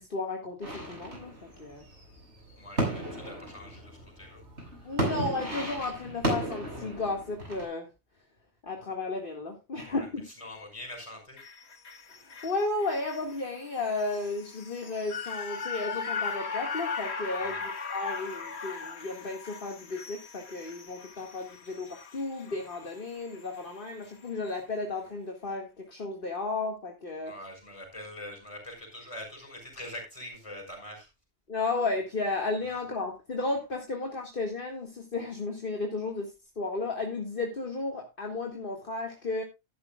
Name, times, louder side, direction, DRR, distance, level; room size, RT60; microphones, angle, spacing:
voice 1, 0.0-1.3 1.6-1.8 4.8-7.9 8.6-10.3 12.1-27.3 31.5-39.4, left 3 dB, 55° left, 2 dB, 2.1 m, -33 dB
sound 1, 0.6-7.7, right 1 dB, 80° right, 6.5 m, -34 dB
voice 2, 2.6-4.4 9.8-11.4 17.4-17.6 27.2-31.1 32.7-32.8, left 1 dB, 30° left, 3 dB, 5.8 m, -44 dB
sound 2, 11.4-23.7 24.1-24.2, left 5 dB, 70° left, 1.7 m, -39 dB
14.0 x 11.5 x 2.3 m, 0.24 s
omnidirectional pair, 1.1 m